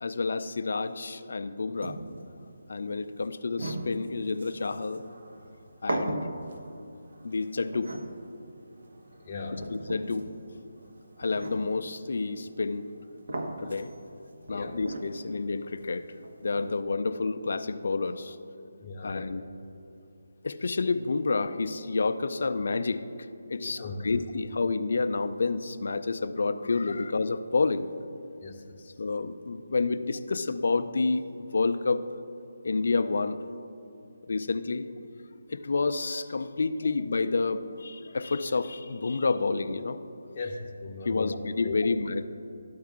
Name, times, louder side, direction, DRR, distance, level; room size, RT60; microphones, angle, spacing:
voice 1, 0.0-2.0 2.7-5.0 5.8-6.3 7.2-7.9 9.7-10.3 11.2-12.9 13.6-13.9 14.5-16.1 16.4-18.4 19.0-19.4 20.4-23.0 23.5-27.9 29.0-32.0 32.6-33.4 34.2-34.8 35.5-40.0 41.0-42.2, left 3 dB, 65° left, 11 dB, 0.4 m, -29 dB
sound 1, 1.8-16.8, right 2 dB, 70° right, 0.8 m, -40 dB
voice 2, 9.2-9.7 14.5-14.7 18.8-19.3 23.6-24.1 28.4-28.9 40.3-41.4 41.6-41.8, left 4 dB, 30° left, 0 dB, 0.7 m, -38 dB
12.5 x 4.7 x 3.6 m, 2.8 s
figure-of-eight pair, 165°, 0 cm